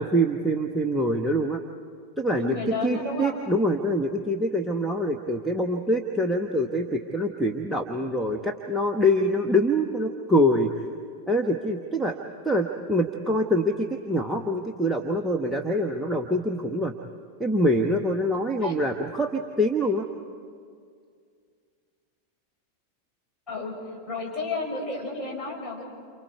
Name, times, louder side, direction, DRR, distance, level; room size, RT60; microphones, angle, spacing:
voice 1, 0.0-1.6 2.2-10.7 11.3-12.2 12.4-16.9 17.4-20.1, equal, ahead, 1 dB, 1.2 m, -25 dB
voice 2, 2.4-3.3 18.6-18.7 23.5-23.7 24.1-25.8, left 3 dB, 20° left, -2 dB, 7.2 m, -31 dB
29.5 x 28.0 x 4.7 m, 2.2 s
figure-of-eight pair, 90°, 0 cm